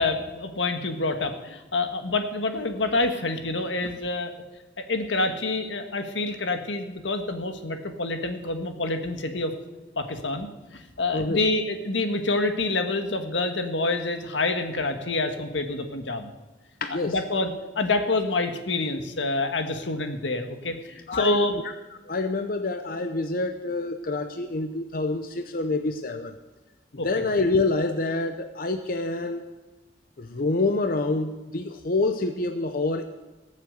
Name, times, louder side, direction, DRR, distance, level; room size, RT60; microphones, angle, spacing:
voice 1, 0.0-4.3 4.9-9.5 10.0-10.5 10.7-16.3 17.0-21.6 27.0-27.1, left 2 dB, 85° left, 6 dB, 1.6 m, -27 dB
voice 2, 11.1-11.4 16.8-17.2 21.1-21.6 22.1-26.3 27.0-29.4 30.2-33.0, left 3 dB, 50° left, 7 dB, 0.7 m, -27 dB
18.5 x 7.4 x 8.1 m, 1.1 s
head